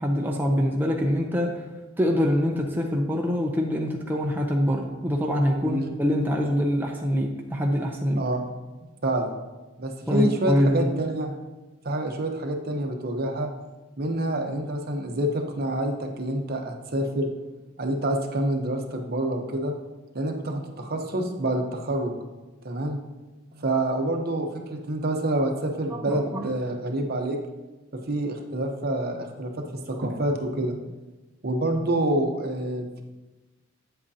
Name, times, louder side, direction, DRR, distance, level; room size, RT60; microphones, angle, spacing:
voice 1, 0.0-1.6 2.0-8.2 10.1-11.0 25.9-26.5 29.9-30.0, equal, 10° right, 0 dB, 0.5 m, -24 dB
voice 2, 8.2-8.5 9.0-9.3 9.8-11.3 11.8-13.5 14.0-17.3 17.8-19.7 20.1-22.1 22.6-23.0 23.5-27.4 27.9-30.7 31.4-33.0, right 1 dB, 50° right, 3 dB, 0.9 m, -27 dB
8.5 x 7.8 x 2.8 m, 1.1 s
head